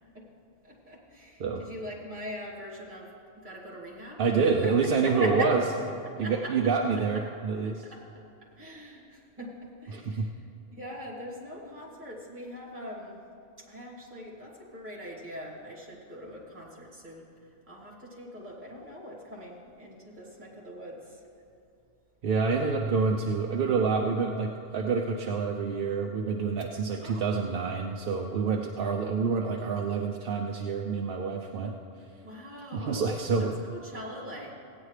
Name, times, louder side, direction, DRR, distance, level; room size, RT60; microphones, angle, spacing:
voice 1, 0.6-3.1 3.4-4.7 5.0-5.6 6.0-6.7 7.9-8.0 8.6-10.3 10.7-13.2 13.6-21.2 27.0-27.3 32.2-34.5, equal, 40° right, -4 dB, 2.5 m, -41 dB
voice 2, 4.2-5.6 5.9-7.8 9.9-10.3 22.2-31.7 32.7-33.6, right 5 dB, 55° right, 2 dB, 0.7 m, -27 dB
17.0 x 9.5 x 3.2 m, 2.5 s
omnidirectional pair, 1.3 m